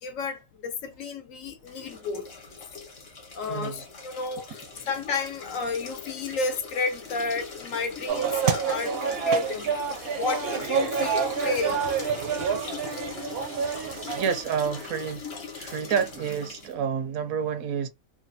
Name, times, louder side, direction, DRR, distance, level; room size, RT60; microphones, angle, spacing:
voice 1, 0.0-2.3 3.3-9.7 10.2-11.8, left 4 dB, 70° left, 1.0 m, -32 dB
sound 1, 1.6-16.7, left 4 dB, 50° left, 1.2 m, -40 dB
voice 2, 3.5-3.8 14.1-15.3 15.5-17.9, right 7 dB, 85° right, 1.1 m, -29 dB
sound 2, 8.1-14.2, right 6 dB, 60° right, 0.6 m, -27 dB
3.1 x 2.3 x 2.6 m
omnidirectional pair, 1.4 m